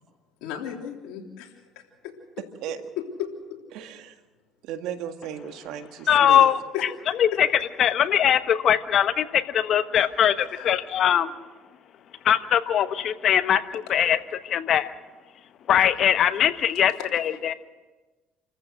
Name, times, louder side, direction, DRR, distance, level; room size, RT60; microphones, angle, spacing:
voice 1, 0.4-1.5 2.0-2.1 3.0-3.6 6.7-7.4 10.5-10.7 17.0-17.6, left 9 dB, 80° left, 1 dB, 3.5 m, -35 dB
voice 2, 3.7-4.1 4.6-6.5, right 9 dB, 75° right, 7 dB, 1.8 m, -35 dB
voice 3, 6.1-6.9 7.2-7.5 7.8-11.3 12.2-14.2 14.4-14.9 15.7-17.5, left 9 dB, 55° left, 11 dB, 1.1 m, -21 dB
28.0 x 14.5 x 6.5 m, 1.2 s
supercardioid pair, 95°, 0 cm